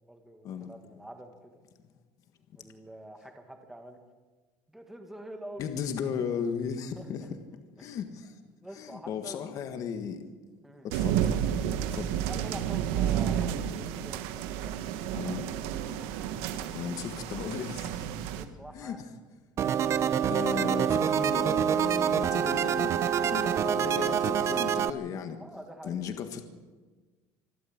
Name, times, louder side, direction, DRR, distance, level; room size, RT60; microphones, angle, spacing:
voice 1, 0.0-1.5 2.6-4.0 4.7-6.1 7.0-7.3 7.8-8.0 8.6-9.4 10.6-10.9 12.3-14.8 18.3-19.1 25.4-26.0, right 1 dB, 5° right, 4 dB, 1.8 m, -46 dB
voice 2, 5.6-7.4 7.8-8.4 8.7-10.2 10.8-11.5 11.9-12.2 15.1-15.5 16.7-18.1 18.7-19.1 20.3-22.9 23.2-25.4 25.8-26.4, left 7 dB, 40° left, 7 dB, 1.7 m, -36 dB
sound 1, 10.9-18.4, right 9 dB, 85° right, 1.6 m, -31 dB
sound 2, 19.6-24.9, right 8 dB, 30° right, 0.7 m, -26 dB
25.5 x 12.5 x 8.7 m, 1.3 s
cardioid pair, 170°, 9 cm